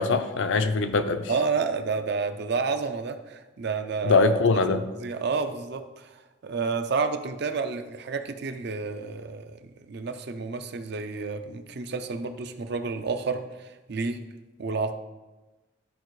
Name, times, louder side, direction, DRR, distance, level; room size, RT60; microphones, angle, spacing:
voice 1, 0.0-1.3 4.0-4.9, left 3 dB, 60° left, 8 dB, 0.5 m, -22 dB
voice 2, 1.3-4.2 4.7-6.1 6.4-14.2 14.6-15.0, right 4 dB, 50° right, 8 dB, 0.5 m, -30 dB
12.5 x 4.4 x 3.2 m, 1.2 s
head